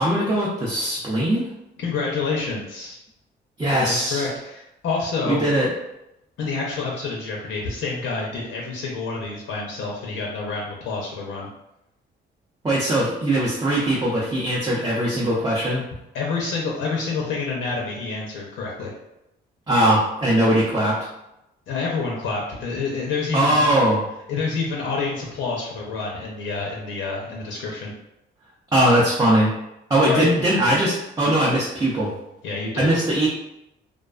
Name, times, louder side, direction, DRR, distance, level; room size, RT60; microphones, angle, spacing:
voice 1, 0.0-1.5 3.6-4.3 5.3-5.7 12.6-15.8 19.7-21.0 23.3-24.0 28.7-29.5 29.9-32.1 32.8-33.3, right 1 dB, 20° right, -6 dB, 0.5 m, -20 dB
voice 2, 1.8-3.0 3.8-5.4 6.4-11.5 16.1-18.9 21.7-23.6 24.3-27.9 30.0-30.3 32.4-32.9, left 4 dB, 75° left, -2 dB, 0.5 m, -28 dB
2.4 x 2.2 x 2.3 m, 0.87 s
cardioid pair, 90°, 20 cm